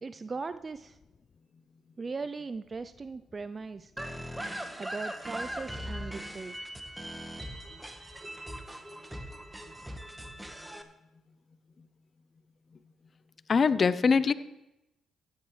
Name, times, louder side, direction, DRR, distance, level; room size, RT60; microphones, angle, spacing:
voice 1, 0.0-1.0 2.0-3.9 4.8-6.6, right 4 dB, 40° right, 12 dB, 0.4 m, -39 dB
sound 1, 4.0-10.8, equal, 10° right, 1.3 m, -40 dB
voice 2, 13.5-14.3, left 5 dB, 45° left, 15 dB, 0.6 m, -23 dB
15.5 x 10.5 x 3.2 m, 0.95 s
supercardioid pair, 55°, 0 cm